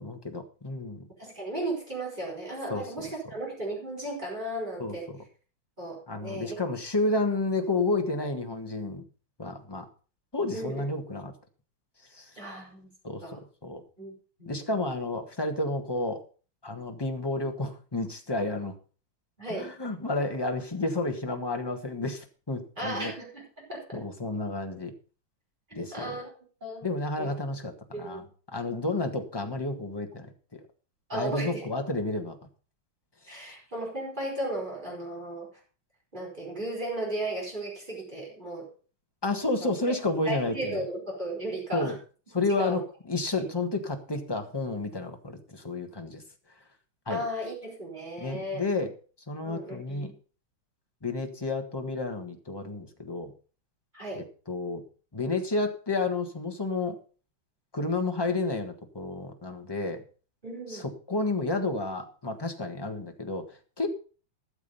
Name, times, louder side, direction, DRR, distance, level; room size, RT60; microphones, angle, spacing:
voice 1, 0.0-1.1 2.7-2.9 4.8-5.0 6.1-9.0 9.4-9.9 10.3-11.3 12.1-12.3 13.0-13.8 14.5-16.2 16.6-18.7 19.5-23.1 23.9-24.9 25.7-26.2 26.8-28.2 28.5-30.3 30.5-30.6 31.1-32.4 33.3-33.5 39.2-40.8 41.7-42.0 42.3-42.8 43.1-46.2 47.1-47.2 48.2-48.9 49.3-50.1 51.0-53.3 54.1-54.8 55.1-57.0 57.7-60.0 60.7-63.9, left 2 dB, 15° left, 5 dB, 1.2 m, -31 dB
voice 2, 1.2-5.1 5.8-6.6 10.5-10.8 12.4-12.9 13.2-13.4 14.0-14.1 14.4-14.9 19.4-19.7 22.8-24.0 25.7-26.3 26.6-27.3 27.9-28.3 31.1-31.6 33.3-35.5 36.1-38.7 39.6-39.7 40.3-42.0 42.6-42.8 43.4-43.5 47.1-48.7 49.4-50.1 53.9-54.3 60.4-60.9, right 1 dB, 20° right, -2 dB, 5.0 m, -35 dB
13.5 x 7.4 x 5.4 m, 0.39 s
omnidirectional pair, 2.2 m